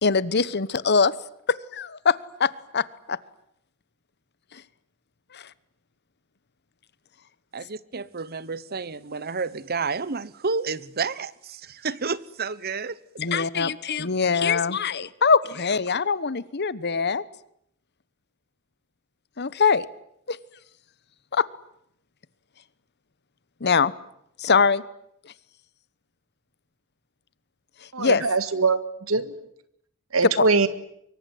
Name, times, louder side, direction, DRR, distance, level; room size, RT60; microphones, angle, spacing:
voice 1, 0.0-1.1 1.5-3.2 4.5-4.6 5.3-5.5 13.2-17.2 19.4-19.8 20.3-20.4 21.3-21.5 23.6-23.9 24.4-24.8 25.2-25.3 27.8-28.3 30.4-30.5, left 5 dB, 55° left, 1.1 m, -23 dB
voice 2, 7.5-13.0 13.3-13.4, right 4 dB, 50° right, 1.1 m, -30 dB
voice 3, 27.9-28.8 29.1-29.3 30.1-30.7, right 4 dB, 85° right, 2.0 m, -22 dB
24.5 x 23.5 x 9.4 m
head